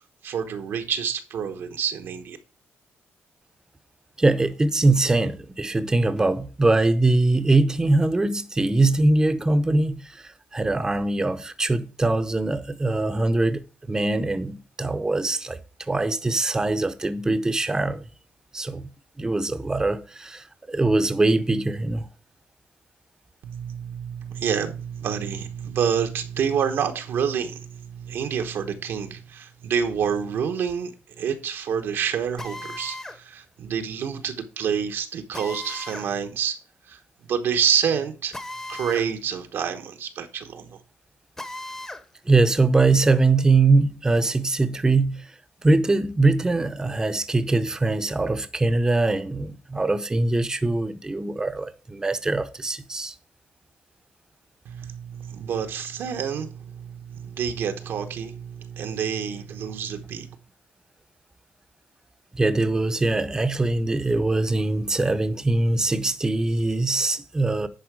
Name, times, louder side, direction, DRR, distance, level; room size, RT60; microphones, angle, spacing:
voice 1, 0.2-2.4 23.4-30.9 31.2-36.6 36.9-37.0 37.3-38.3 38.7-40.7 54.6-60.3, right 7 dB, 70° right, 1.1 m, -28 dB
voice 2, 4.2-13.6 13.9-18.0 18.5-18.8 19.2-22.1 42.3-45.3 45.6-53.1 62.3-67.7, right 2 dB, 15° right, 0.7 m, -22 dB
Drill, 32.4-33.2 35.3-36.1 38.3-39.1 39.5-39.6 41.4-42.0, left 1 dB, 15° left, 0.9 m, -36 dB
10.5 x 4.5 x 4.7 m
cardioid pair, 120°, 4 cm